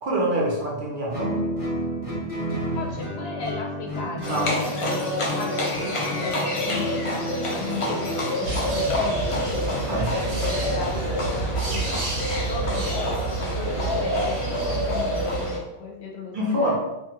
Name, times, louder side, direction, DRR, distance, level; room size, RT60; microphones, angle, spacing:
voice 1, 0.0-1.4 4.1-4.6 9.9-10.1 16.3-16.8, right 1 dB, 55° right, -3 dB, 0.7 m, -25 dB
Guitar, 1.1-8.6, equal, 20° left, 0.9 m, -31 dB
voice 2, 2.7-9.8 10.1-12.0 12.5-16.8, left 4 dB, 70° left, 0 dB, 0.8 m, -35 dB
Livestock farm animals working animals, 4.2-15.6, left 1 dB, 50° left, 0.4 m, -29 dB
sound 1, 8.4-15.4, right 2 dB, 85° right, 1.1 m, -28 dB
2.8 x 2.4 x 2.8 m, 0.96 s
omnidirectional pair, 1.2 m